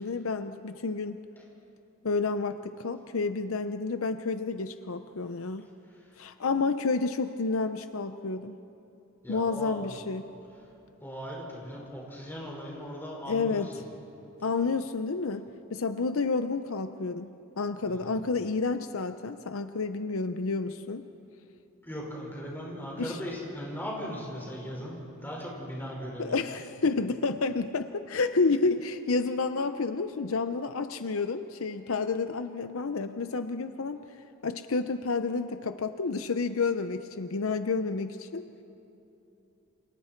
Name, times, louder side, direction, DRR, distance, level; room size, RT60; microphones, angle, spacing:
voice 1, 0.0-1.2 2.0-5.7 6.2-8.6 9.3-10.2 13.3-13.7 14.4-17.3 17.6-21.1 23.0-23.2 26.2-34.0 34.4-38.4, left 4 dB, 70° left, 9 dB, 0.7 m, -30 dB
voice 2, 5.9-6.2 9.2-10.0 11.0-13.7 17.9-18.1 21.8-26.3, equal, 10° left, -3 dB, 5.3 m, -38 dB
29.0 x 28.0 x 4.5 m, 2.9 s
head